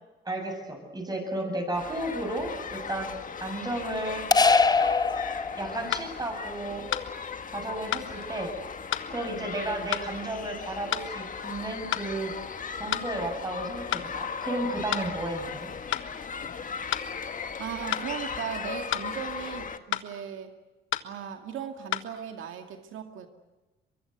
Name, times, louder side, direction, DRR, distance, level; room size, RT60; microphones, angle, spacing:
voice 1, 0.2-3.1 3.4-4.3 5.5-6.9 7.5-8.6 9.1-12.3 12.8-15.7, right 1 dB, 20° right, 4 dB, 8.0 m, -33 dB
sound 1, 1.7-19.8, left 6 dB, 40° left, 1.6 m, -37 dB
sound 2, 4.3-6.0, left 4 dB, 20° left, 1.0 m, -22 dB
sound 3, 5.9-6.1 6.9-7.1 7.9-8.1 8.9-9.1 9.9-10.1 10.9-11.1 11.9-12.1 12.9-13.1 13.9-14.1 14.9-15.1 15.9-16.1 16.9-17.1 17.9-18.1 18.9-19.1 19.9-20.1 20.9-21.1 21.9-22.1, left 12 dB, 80° left, 1.3 m, -30 dB
voice 2, 17.6-20.5 21.0-23.3, right 8 dB, 80° right, 5 dB, 2.2 m, -37 dB
23.5 x 23.5 x 8.1 m, 1.1 s
cardioid pair, 90°, 20 cm